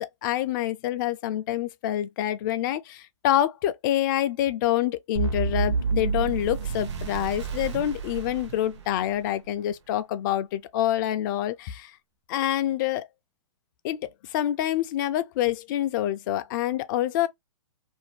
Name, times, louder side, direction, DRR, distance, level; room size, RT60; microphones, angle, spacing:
voice 1, 0.0-11.9 12.3-13.1 13.8-17.3, left 12 dB, 40° left, 0.4 m, -27 dB
sound 1, 5.2-9.3, right 5 dB, 60° right, 0.8 m, -29 dB
2.6 x 2.1 x 3.1 m
hypercardioid pair, 125°, 16 cm